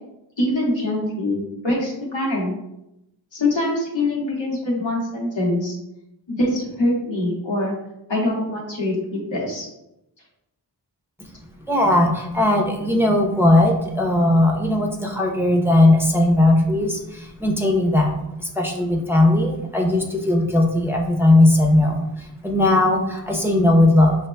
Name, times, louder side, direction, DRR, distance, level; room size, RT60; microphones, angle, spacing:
voice 1, 0.4-2.5 3.3-5.8 6.3-7.7 8.1-9.7, left 1 dB, 90° left, -4 dB, 1.3 m, -24 dB
voice 2, 11.7-24.2, left 1 dB, 5° right, 0 dB, 0.7 m, -18 dB
5.6 x 2.9 x 2.2 m, 0.86 s
cardioid pair, 45°, 44 cm